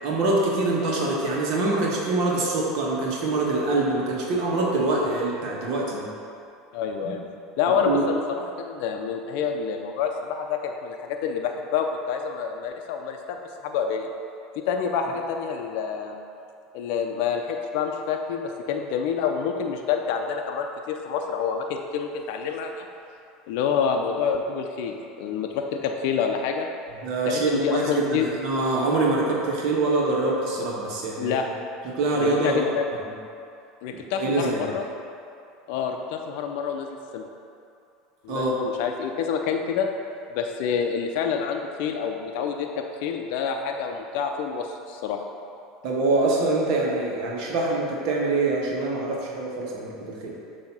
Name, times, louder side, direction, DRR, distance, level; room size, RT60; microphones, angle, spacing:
voice 1, 0.0-6.1 7.8-8.0 27.0-31.4 31.8-32.6 34.1-34.7 38.3-38.5 45.8-50.3, right 2 dB, 65° right, -3 dB, 1.3 m, -24 dB
voice 2, 6.7-7.2 7.6-14.1 14.6-16.2 16.7-22.8 23.5-26.7 27.3-28.3 31.2-31.4 32.2-32.9 33.8-34.8 35.7-37.3 38.2-39.9 40.3-45.2, left 6 dB, 70° left, 3 dB, 0.5 m, -27 dB
7.0 x 2.8 x 5.4 m, 2.6 s
supercardioid pair, 100°, 0 cm